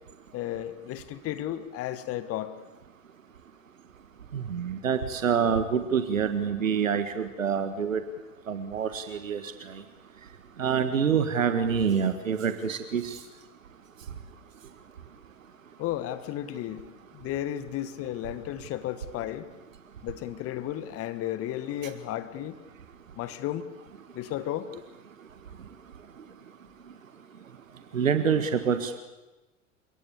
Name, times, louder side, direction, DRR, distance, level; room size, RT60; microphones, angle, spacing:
voice 1, 0.3-2.5 15.8-16.8 17.1-19.4 20.0-22.6 23.2-23.6 24.1-24.8, left 12 dB, 35° left, 14 dB, 1.6 m, -33 dB
voice 2, 4.3-8.0 8.5-9.4 10.6-13.2 27.9-29.0, right 7 dB, 70° right, 10 dB, 1.7 m, -26 dB
29.5 x 17.5 x 8.5 m, 1.1 s
figure-of-eight pair, 85°, 40 cm